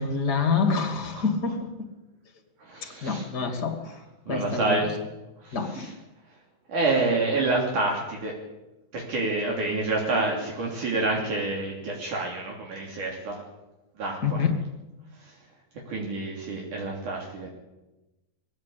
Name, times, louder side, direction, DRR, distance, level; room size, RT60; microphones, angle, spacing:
voice 1, 0.0-1.7 3.0-4.0 4.3-4.9 5.5-5.9 14.2-14.5, left 5 dB, 30° left, 6 dB, 2.6 m, -26 dB
voice 2, 2.6-3.3 4.3-4.9 5.4-5.9 6.7-8.4 8.9-13.4 14.0-14.4 15.2-15.3 15.9-17.5, right 3 dB, 60° right, -1 dB, 4.5 m, -28 dB
22.0 x 16.0 x 8.6 m, 1.0 s
omnidirectional pair, 4.2 m